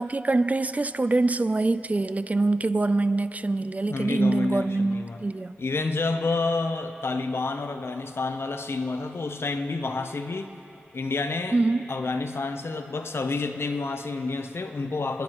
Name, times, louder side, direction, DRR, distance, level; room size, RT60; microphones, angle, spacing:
voice 1, 0.0-5.6 11.5-11.9, right 2 dB, 35° right, 13 dB, 0.4 m, -24 dB
voice 2, 3.9-5.2 5.6-10.6 10.9-11.6 11.9-15.2, left 3 dB, 75° left, 7 dB, 0.7 m, -29 dB
29.0 x 10.5 x 3.0 m, 3.0 s
wide cardioid pair, 60°, 4 cm